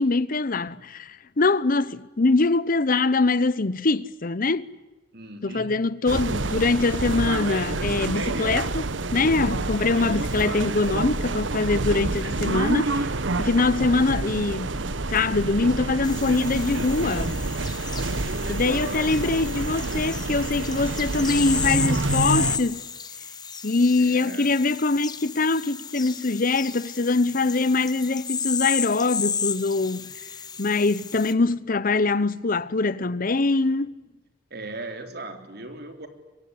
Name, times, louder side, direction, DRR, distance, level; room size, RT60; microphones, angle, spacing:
voice 1, 0.0-4.7 5.4-13.1 13.4-14.7 15.1-17.4 18.5-22.8 23.6-30.1 30.6-34.0, left 3 dB, 50° left, 0.8 m, -23 dB
voice 2, 5.1-5.8 18.3-19.2 19.8-20.1 24.0-24.5 34.5-36.1, right 2 dB, 60° right, 3.7 m, -38 dB
sound 1, 6.1-22.6, right 3 dB, 90° right, 1.2 m, -28 dB
sound 2, 16.0-31.3, left 6 dB, 20° left, 1.4 m, -33 dB
24.5 x 24.0 x 9.7 m
head